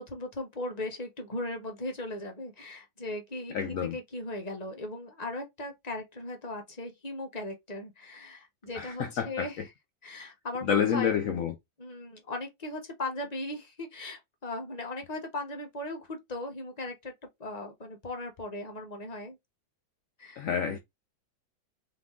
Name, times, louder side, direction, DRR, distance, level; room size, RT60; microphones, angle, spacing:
voice 1, 0.0-9.6 10.0-11.2 11.8-17.1 17.4-19.4 20.2-20.5, left 2 dB, 30° left, 0.8 m, -38 dB
voice 2, 3.5-4.0 8.7-9.5 10.6-11.5 20.4-20.8, left 8 dB, 75° left, 0.7 m, -28 dB
3.9 x 3.2 x 3.6 m
omnidirectional pair, 2.1 m